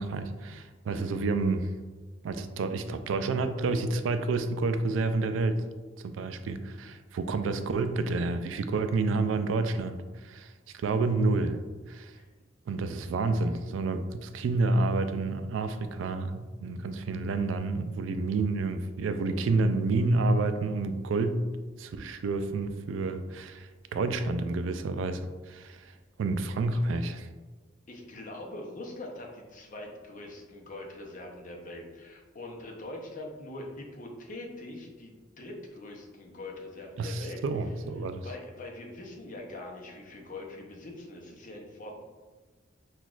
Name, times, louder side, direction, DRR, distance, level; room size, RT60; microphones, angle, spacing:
voice 1, 0.0-1.7 2.2-5.6 6.0-11.6 11.9-12.1 12.7-21.4 21.8-25.9 26.2-27.3 37.0-38.3, right 3 dB, 80° right, 10 dB, 0.3 m, -29 dB
voice 2, 27.9-37.4 38.2-42.0, left 2 dB, 45° left, 0 dB, 0.6 m, -43 dB
5.9 x 2.4 x 2.4 m, 1.3 s
head